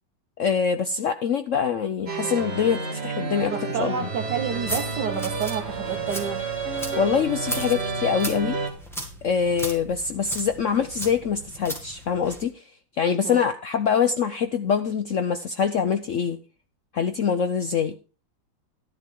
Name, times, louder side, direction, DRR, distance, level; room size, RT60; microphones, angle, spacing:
voice 1, 0.4-4.1 7.0-8.6 9.2-12.6 13.0-16.4 16.9-17.9, left 7 dB, 70° left, 9 dB, 0.7 m, -24 dB
sound 1, 2.1-8.7, right 4 dB, 35° right, 1.9 m, -30 dB
voice 2, 3.5-6.4 13.2-13.4, right 7 dB, 65° right, 2 dB, 1.7 m, -29 dB
sound 2, 4.4-12.5, right 1 dB, ahead, 1.8 m, -37 dB
12.0 x 10.5 x 3.6 m, 0.34 s
omnidirectional pair, 2.1 m